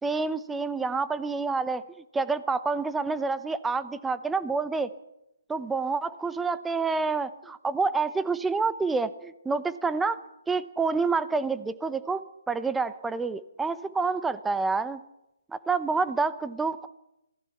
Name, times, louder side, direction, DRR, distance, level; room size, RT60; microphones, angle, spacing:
voice 1, 0.0-1.8 2.1-4.9 5.5-10.2 10.5-15.0 15.7-16.9, right 4 dB, 5° right, 14 dB, 1.0 m, -28 dB
27.0 x 18.5 x 6.0 m, 0.88 s
figure-of-eight pair, 145°, 0 cm